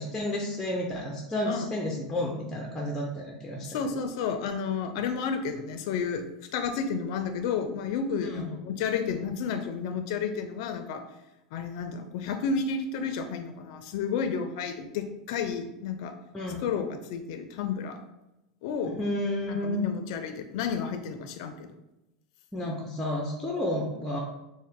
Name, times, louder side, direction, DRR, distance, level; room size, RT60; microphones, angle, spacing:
voice 1, 0.0-3.8 8.2-8.5 16.3-16.6 18.9-19.9 22.5-24.2, left 1 dB, 10° left, 0 dB, 0.5 m, -31 dB
voice 2, 3.6-6.2 6.5-11.0 11.5-16.1 16.6-18.0 18.6-19.0 19.5-21.7, left 6 dB, 65° left, 7 dB, 0.4 m, -31 dB
3.9 x 2.0 x 3.5 m, 0.92 s
supercardioid pair, 115°, 3 cm